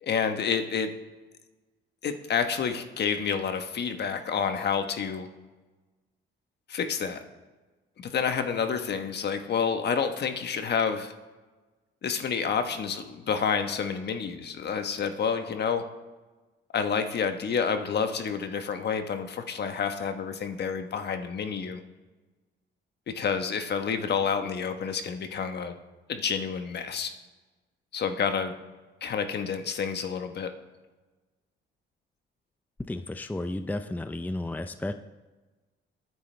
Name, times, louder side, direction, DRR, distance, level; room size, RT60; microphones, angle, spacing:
voice 1, 0.0-0.9 2.0-5.3 6.7-7.2 8.0-11.1 12.0-15.8 16.7-21.8 23.1-25.8 26.1-27.1 27.9-28.5 29.0-30.5, left 6 dB, 55° left, 7 dB, 1.3 m, -29 dB
voice 2, 32.9-34.9, left 2 dB, 10° left, 9 dB, 0.6 m, -33 dB
22.0 x 9.6 x 3.4 m, 1.2 s
cardioid pair, 90°, 20 cm